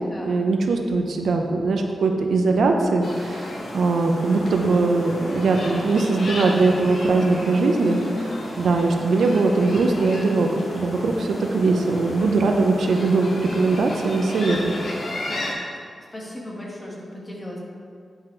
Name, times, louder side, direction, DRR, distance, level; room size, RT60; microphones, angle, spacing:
voice 1, 0.2-8.0 8.6-14.7, right 3 dB, 75° right, 3 dB, 0.7 m, -21 dB
sound 1, 3.0-15.5, left 1 dB, 55° left, 1.4 m, -33 dB
voice 2, 7.8-8.2 16.1-17.6, left 1 dB, 20° left, -3 dB, 1.4 m, -35 dB
8.8 x 5.6 x 4.5 m, 2.2 s
wide cardioid pair, 170°, 0 cm